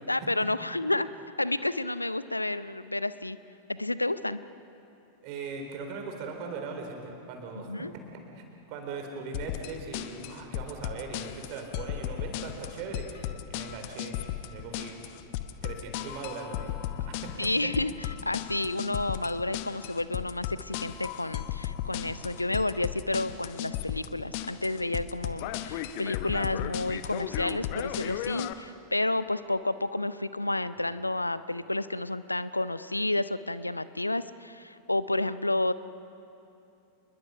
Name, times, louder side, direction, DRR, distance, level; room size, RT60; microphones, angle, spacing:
voice 1, 0.1-1.1 1.4-3.4 3.7-4.4 7.7-7.9 17.4-35.7, left 2 dB, 85° left, 15 dB, 0.6 m, -30 dB
voice 2, 5.2-14.1 14.4-15.0 15.6-17.3 30.8-30.9, right 4 dB, 45° right, 3 dB, 4.0 m, -40 dB
sound 1, 9.3-28.5, left 12 dB, 45° left, 0.9 m, -36 dB
28.5 x 21.5 x 5.7 m, 2.8 s
figure-of-eight pair, 90°, 0 cm